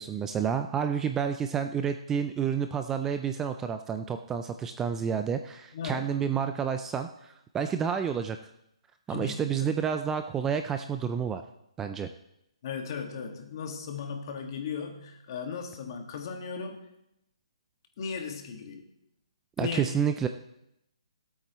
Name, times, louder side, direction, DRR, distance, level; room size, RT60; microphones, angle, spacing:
voice 1, 0.0-8.4 9.1-11.4 11.8-12.1 19.6-20.3, right 7 dB, 10° right, 7 dB, 0.3 m, -29 dB
voice 2, 5.7-6.1 9.1-9.7 12.6-16.8 18.0-18.9 19.6-19.9, left 6 dB, 40° left, 3 dB, 1.8 m, -36 dB
18.0 x 8.6 x 3.1 m, 0.82 s
hypercardioid pair, 155°, 3 cm